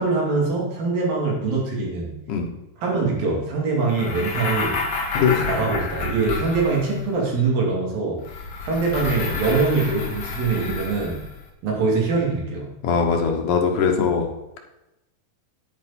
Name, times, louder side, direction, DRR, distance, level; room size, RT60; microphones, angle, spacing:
voice 1, 0.0-2.2 2.8-4.8 5.4-8.2 8.6-11.2 11.6-12.8, right 4 dB, 80° right, -1 dB, 4.3 m, -23 dB
sound 1, 3.9-7.1 8.2-11.4, left 4 dB, 50° left, 1.7 m, -29 dB
voice 2, 5.1-5.6 12.8-14.3, left 6 dB, 70° left, 3 dB, 2.7 m, -21 dB
9.8 x 9.8 x 4.3 m, 0.92 s
omnidirectional pair, 4.0 m